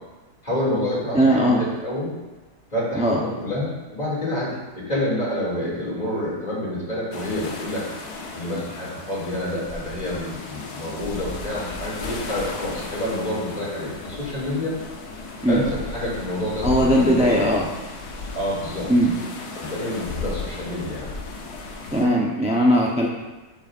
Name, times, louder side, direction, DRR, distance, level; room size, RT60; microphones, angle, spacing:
voice 1, 0.4-2.1 2.7-7.9 8.3-14.7 15.5-17.4 18.3-18.9 19.5-21.1, left 1 dB, 25° left, -6 dB, 2.6 m, -28 dB
voice 2, 1.1-1.6 3.0-3.2 15.4-15.6 16.6-17.7 18.9-19.2 21.9-23.1, equal, 10° right, -3 dB, 0.4 m, -19 dB
sound 1, 7.1-22.0, left 3 dB, 70° left, 1.4 m, -35 dB
9.2 x 8.2 x 2.5 m, 1.1 s
omnidirectional pair, 1.7 m